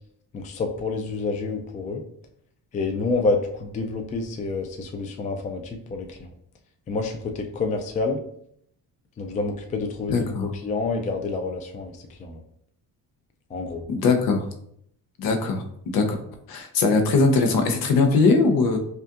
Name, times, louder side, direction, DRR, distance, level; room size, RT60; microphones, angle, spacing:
voice 1, 0.3-2.0 2.7-6.2 6.9-8.2 9.2-11.9 12.2-12.4 13.5-13.8, left 3 dB, 20° left, 4 dB, 0.3 m, -28 dB
voice 2, 10.1-10.5 13.9-14.4 15.2-16.2 16.5-18.8, left 4 dB, 70° left, 5 dB, 0.7 m, -21 dB
5.2 x 2.4 x 2.4 m, 0.70 s
cardioid pair, 125°, 37 cm